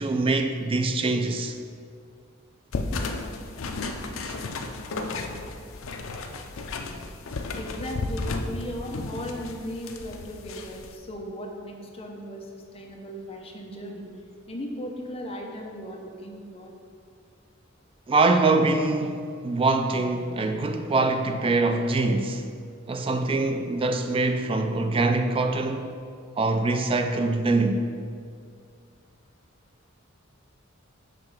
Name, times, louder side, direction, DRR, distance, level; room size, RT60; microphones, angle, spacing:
voice 1, 0.0-1.6 18.1-22.4 22.9-25.9 26.4-27.8, right 3 dB, 25° right, 0.3 m, -24 dB
sound 1, 2.7-10.9, left 3 dB, 70° left, 0.5 m, -33 dB
voice 2, 7.5-14.1 14.5-16.7, equal, 30° left, 0.8 m, -37 dB
6.6 x 3.2 x 5.9 m
head